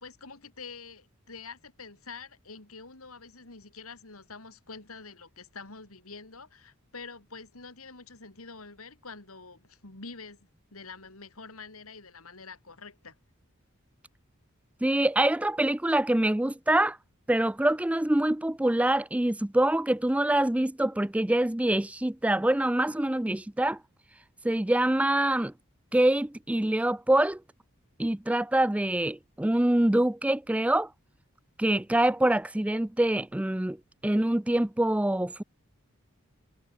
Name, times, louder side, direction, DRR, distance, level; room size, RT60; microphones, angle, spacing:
voice 1, 0.0-13.2, left 4 dB, 85° left, 3.7 m, -46 dB
voice 2, 14.8-17.0 17.3-23.8 24.4-25.5 25.9-27.4 28.0-30.9 31.6-33.8 34.0-35.4, right 1 dB, 5° right, 0.4 m, -25 dB
head